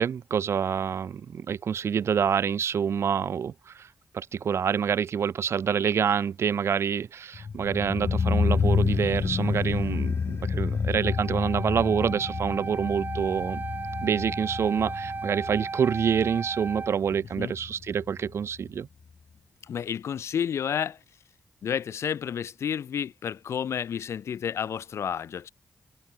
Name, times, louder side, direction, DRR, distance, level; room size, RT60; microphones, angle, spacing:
voice 1, 0.0-3.9 4.1-13.6 14.0-18.9, right 7 dB, 70° right, 0.7 m, -27 dB
sound 1, 7.3-18.4 18.6-18.7, left 5 dB, 60° left, 1.2 m, -29 dB
Wind instrument woodwind instrument, 11.0-17.0, right 4 dB, 45° right, 6.1 m, -36 dB
voice 2, 19.6-21.0 21.6-25.5, left 8 dB, 80° left, 1.8 m, -31 dB
open air
cardioid pair, 50°, 5 cm